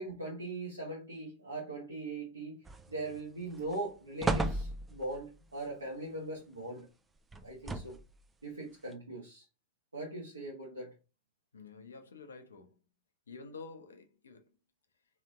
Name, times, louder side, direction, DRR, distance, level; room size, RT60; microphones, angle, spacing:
voice 1, 0.0-2.6 2.9-6.9 7.4-8.0 8.4-9.4 9.9-10.9, right 2 dB, 80° right, 1.0 m, -40 dB
sound 1, 2.7-3.2 3.6-3.7 4.2-5.2 7.3-8.2 8.9-9.0, right 2 dB, 15° right, 0.4 m, -34 dB
voice 2, 11.5-12.8 13.3-14.5, left 4 dB, 70° left, 0.7 m, -49 dB
3.2 x 3.0 x 3.7 m
figure-of-eight pair, 90°, 0 cm